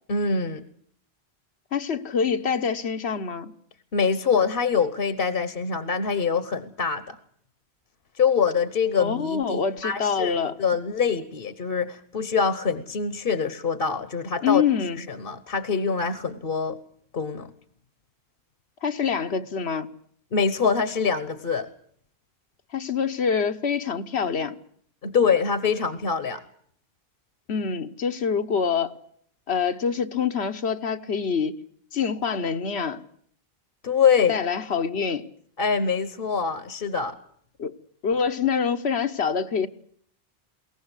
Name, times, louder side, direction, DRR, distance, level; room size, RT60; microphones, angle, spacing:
voice 1, 0.1-0.6 3.9-7.2 8.2-14.6 15.0-16.8 17.1-17.5 20.3-21.7 25.0-26.4 33.8-34.4 35.6-37.1, left 6 dB, 60° left, 1.3 m, -24 dB
voice 2, 1.7-3.5 9.0-10.6 14.4-15.0 18.8-19.9 22.7-24.6 27.5-29.0 29.5-31.6 31.9-33.0 34.3-35.3 37.6-37.7 38.0-39.7, left 6 dB, 80° left, 1.4 m, -25 dB
22.0 x 18.0 x 8.1 m
omnidirectional pair, 1.1 m